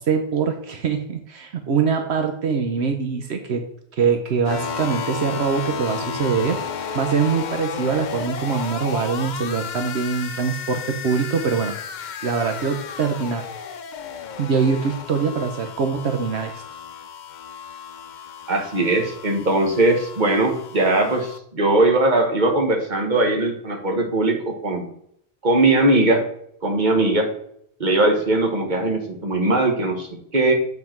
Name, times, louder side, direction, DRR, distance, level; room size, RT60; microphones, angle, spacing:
voice 1, 0.0-3.6 3.9-11.7 12.2-13.4 14.4-16.6, right 5 dB, 80° right, 5 dB, 1.1 m, -23 dB
sound 1, 4.4-21.4, left 6 dB, 50° left, 0.6 m, -33 dB
voice 2, 18.5-24.9 25.4-26.2 26.6-27.3 27.8-30.5, right 2 dB, 45° right, 2 dB, 1.6 m, -20 dB
7.6 x 5.8 x 4.5 m, 0.71 s
omnidirectional pair, 1.1 m